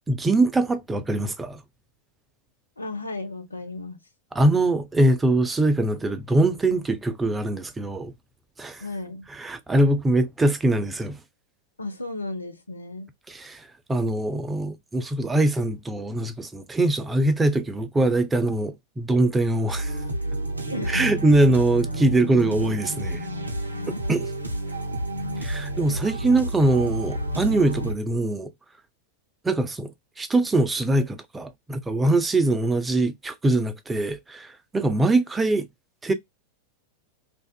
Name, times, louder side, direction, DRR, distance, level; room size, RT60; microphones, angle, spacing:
voice 1, 0.1-1.6 4.3-8.1 8.6-8.8 9.3-11.2 13.3-20.0 20.9-23.3 24.1-24.3 25.4-28.5 29.4-35.7 36.0-36.1, right 2 dB, 10° right, 0.4 m, -23 dB
voice 2, 2.8-4.0 8.8-9.3 11.8-13.1 20.6-21.4, left 2 dB, 80° left, 0.5 m, -34 dB
sound 1, 19.7-27.9, right 1 dB, 80° right, 0.4 m, -30 dB
2.6 x 2.4 x 2.2 m
figure-of-eight pair, 90°, 0 cm